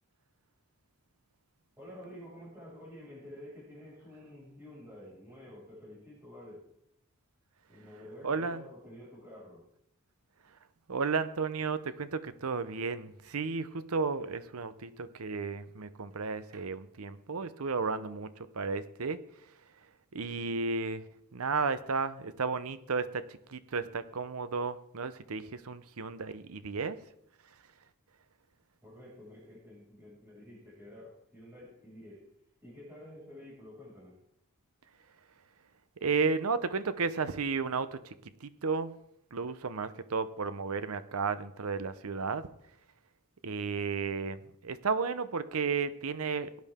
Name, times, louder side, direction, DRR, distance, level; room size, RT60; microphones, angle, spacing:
voice 1, 1.8-6.6 7.7-9.6 28.8-32.3 32.6-34.2, left 1 dB, 10° right, -6 dB, 6.0 m, -50 dB
voice 2, 8.2-8.6 10.9-19.2 20.1-21.0 21.3-27.0 36.0-38.1 38.4-39.0 39.3-42.5 43.4-46.5, right 4 dB, 70° right, 14 dB, 0.7 m, -33 dB
17.0 x 10.5 x 3.6 m, 0.73 s
head